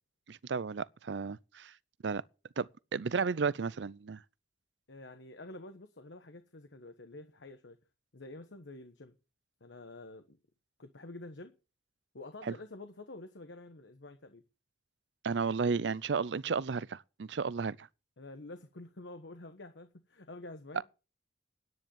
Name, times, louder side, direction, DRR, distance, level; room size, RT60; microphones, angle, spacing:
voice 1, 0.3-1.7 2.0-2.2 2.6-4.2 12.5-12.6 15.2-17.9, right 5 dB, 80° right, 0.5 m, -33 dB
voice 2, 4.9-7.8 8.1-9.2 9.6-10.4 10.8-11.5 12.1-14.4 18.2-20.8, left 2 dB, 90° left, 1.2 m, -48 dB
10.5 x 9.6 x 7.0 m
head